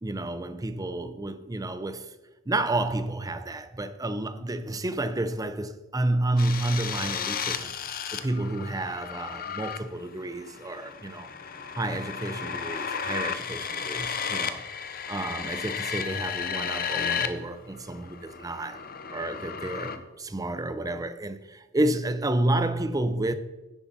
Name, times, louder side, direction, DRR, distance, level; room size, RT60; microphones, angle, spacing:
voice 1, 0.0-2.1 2.5-7.8 8.1-11.3 11.7-14.7 15.1-18.8 19.1-23.3, right 2 dB, 15° right, 0.6 m, -30 dB
sound 1, 6.4-17.3 17.6-20.0, left 7 dB, 45° left, 0.7 m, -34 dB
10.0 x 9.9 x 4.1 m
head